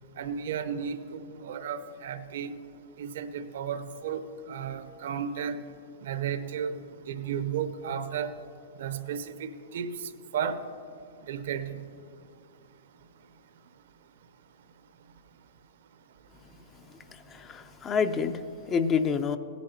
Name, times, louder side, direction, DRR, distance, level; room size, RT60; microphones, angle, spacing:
voice 1, 0.2-2.5 3.0-5.6 6.0-8.4 8.8-10.6 11.3-11.8, right 7 dB, 70° right, 11 dB, 0.7 m, -34 dB
voice 2, 17.1-19.4, left 6 dB, 25° left, 10 dB, 0.5 m, -28 dB
17.5 x 10.5 x 2.9 m, 2.4 s
hypercardioid pair, 130°, 0 cm